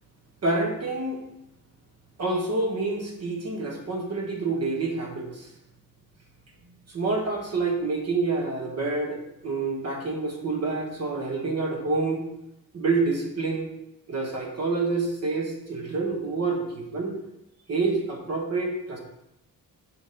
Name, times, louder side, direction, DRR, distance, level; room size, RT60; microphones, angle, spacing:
voice 1, 0.4-1.2 2.2-5.5 6.9-12.2 12.7-13.7 14.1-17.2 17.7-19.0, right 3 dB, 45° right, 1 dB, 1.3 m, -27 dB
6.1 x 4.0 x 3.8 m, 0.85 s
wide cardioid pair, 140°, 35 cm